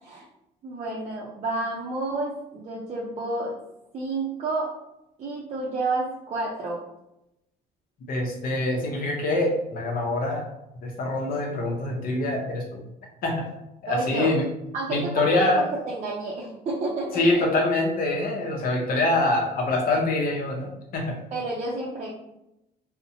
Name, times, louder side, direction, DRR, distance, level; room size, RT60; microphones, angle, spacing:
voice 1, 0.6-3.6 3.9-4.7 5.2-6.8 13.9-14.3 14.7-17.5 21.3-22.1, right 2 dB, 40° right, -3 dB, 0.5 m, -30 dB
voice 2, 8.1-10.4 10.8-12.8 13.2-13.5 13.8-14.5 14.9-15.7 17.1-21.2, left 2 dB, 60° left, 1 dB, 0.7 m, -25 dB
2.6 x 2.1 x 2.6 m, 0.86 s
cardioid pair, 110°, 17 cm